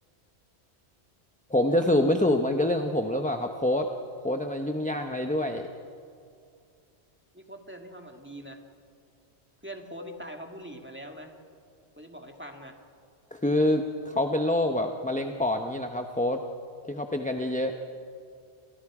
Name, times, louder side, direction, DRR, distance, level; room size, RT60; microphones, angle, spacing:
voice 1, 1.5-3.9 4.2-5.7 13.3-16.4 16.9-17.8, left 1 dB, 10° left, 5 dB, 0.8 m, -26 dB
voice 2, 7.3-8.6 9.6-11.4 12.0-12.8, equal, 10° right, 3 dB, 2.1 m, -42 dB
29.0 x 27.5 x 5.0 m, 2.4 s
omnidirectional pair, 1.1 m